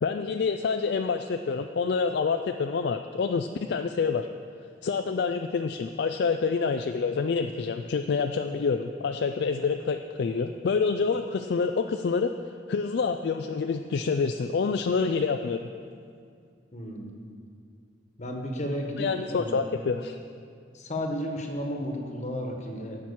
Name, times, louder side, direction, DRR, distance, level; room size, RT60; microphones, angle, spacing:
voice 1, 0.0-4.3 4.8-12.3 12.7-15.6 19.0-20.2, left 5 dB, 60° left, 6 dB, 0.3 m, -27 dB
voice 2, 16.7-17.1 18.2-19.7 20.7-23.0, equal, 40° left, 2 dB, 1.3 m, -33 dB
10.5 x 6.0 x 8.5 m, 2.3 s
head